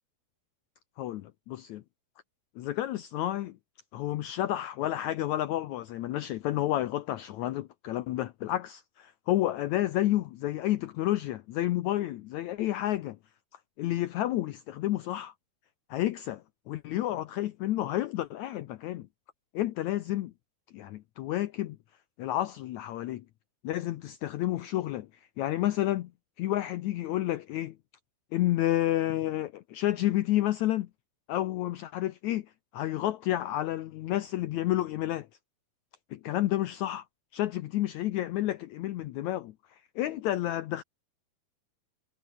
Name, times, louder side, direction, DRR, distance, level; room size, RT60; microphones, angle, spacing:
voice 1, 1.0-1.8 2.6-3.6 3.9-13.2 13.8-15.3 15.9-19.1 19.5-20.3 20.7-21.8 22.2-23.2 23.6-25.1 25.4-26.1 26.4-27.8 28.3-30.9 31.3-32.5 32.7-35.3 36.1-37.0 37.3-40.8, left 14 dB, 85° left, 1.6 m, -30 dB
omnidirectional pair, 4.4 m